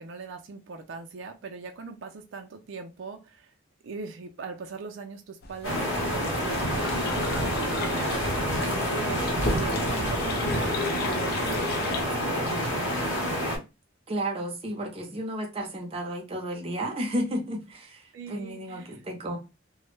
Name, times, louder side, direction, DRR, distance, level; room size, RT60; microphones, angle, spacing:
voice 1, 0.0-3.5 3.8-8.2 8.6-9.2 9.5-13.2 18.1-18.9, right 4 dB, 80° right, 0.4 m, -40 dB
sound 1, 5.4-12.0, left 5 dB, 55° left, 0.4 m, -37 dB
sound 2, 5.6-13.6, equal, 80° left, 0.9 m, -28 dB
voice 2, 14.1-19.4, right 1 dB, 30° right, 0.5 m, -32 dB
2.1 x 2.0 x 3.0 m
head